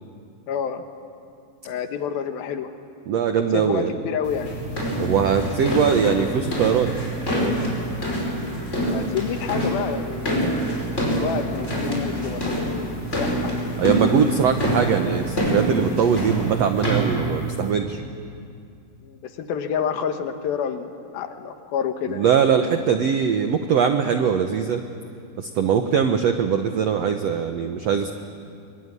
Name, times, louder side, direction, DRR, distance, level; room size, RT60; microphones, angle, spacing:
voice 1, 0.5-0.9 1.7-2.7 3.5-4.6 8.9-10.5 11.2-13.7 19.0-22.3, left 7 dB, 70° left, 7 dB, 3.1 m, -29 dB
voice 2, 3.1-3.9 5.0-6.9 7.3-7.5 13.8-18.0 22.1-24.8 25.4-28.1, right 7 dB, 85° right, 6 dB, 1.4 m, -21 dB
sound 1, 4.2-17.7, right 1 dB, 15° left, 5.3 m, -26 dB
24.5 x 24.0 x 9.8 m, 2.4 s
omnidirectional pair, 4.6 m